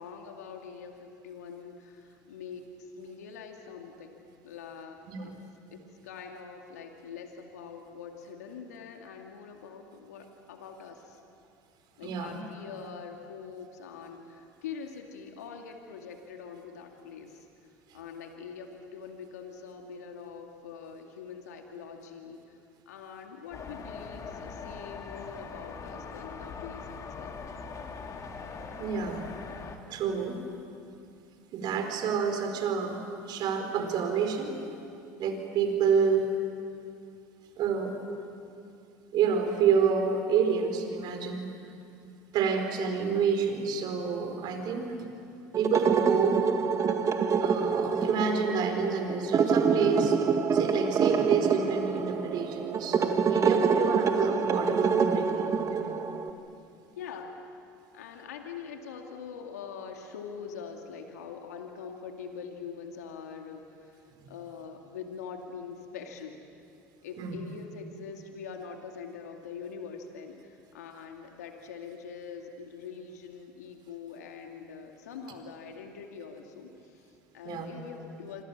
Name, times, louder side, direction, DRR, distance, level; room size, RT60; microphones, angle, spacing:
voice 1, 0.0-4.2 4.4-5.3 5.7-11.2 12.0-17.5 17.9-22.6 22.9-27.4 53.8-54.3 56.9-57.4 57.9-66.4 67.0-78.4, left 6 dB, 85° left, 3 dB, 2.3 m, -44 dB
voice 2, 12.0-12.4 28.8-29.3 29.9-30.4 31.5-33.0 33.3-34.6 35.2-36.3 37.6-38.0 39.1-41.4 42.3-44.9 45.5-46.4 47.4-50.2 50.5-55.8 67.2-67.4 77.4-77.7, right 6 dB, 55° right, 5 dB, 4.6 m, -28 dB
sound 1, 23.5-29.8, left 5 dB, 40° left, 3.0 m, -41 dB
sound 2, 45.5-56.3, right 5 dB, 40° right, 2.1 m, -26 dB
26.5 x 26.5 x 7.3 m, 2.5 s
hypercardioid pair, 75°, 9 cm